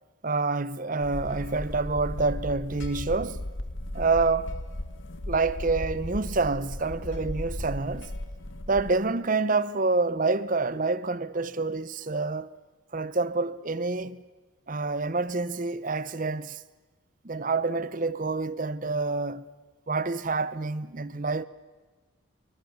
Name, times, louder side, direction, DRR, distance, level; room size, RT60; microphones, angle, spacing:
voice 1, 0.2-3.4 3.9-4.6 5.3-8.1 8.7-12.6 12.9-14.2 14.7-16.6 17.2-19.5 19.9-21.4, right 3 dB, 40° right, 0.7 m, -27 dB
sound 1, 1.0-8.9, left 1 dB, 65° left, 1.5 m, -36 dB
27.0 x 23.5 x 7.2 m
head